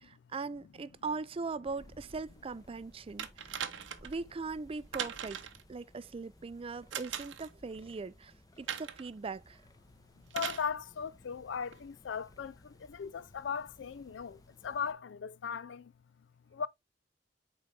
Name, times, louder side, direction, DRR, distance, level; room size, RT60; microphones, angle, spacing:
voice 1, 0.0-3.6 4.0-5.4 5.7-9.6, right 4 dB, 30° right, 0.4 m, -40 dB
sound 1, 1.6-14.9, left 1 dB, 20° left, 0.8 m, -59 dB
sound 2, 3.2-4.2 4.9-5.6 6.9-7.5 8.7-9.1 10.3-10.7 11.7-11.8, right 8 dB, 90° right, 0.8 m, -39 dB
voice 2, 10.3-15.9 16.5-16.7, left 6 dB, 70° left, 0.4 m, -38 dB
8.6 x 3.9 x 3.3 m
head